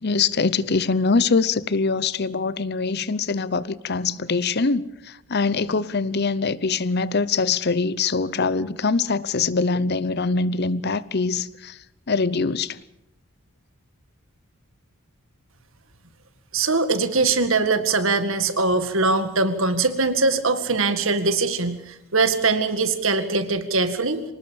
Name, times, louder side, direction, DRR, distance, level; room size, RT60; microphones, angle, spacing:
voice 1, 0.0-11.8 12.1-12.8, left 4 dB, 45° left, 0.8 m, -23 dB
voice 2, 16.5-24.2, right 3 dB, 60° right, 1.9 m, -22 dB
25.5 x 19.5 x 7.1 m
head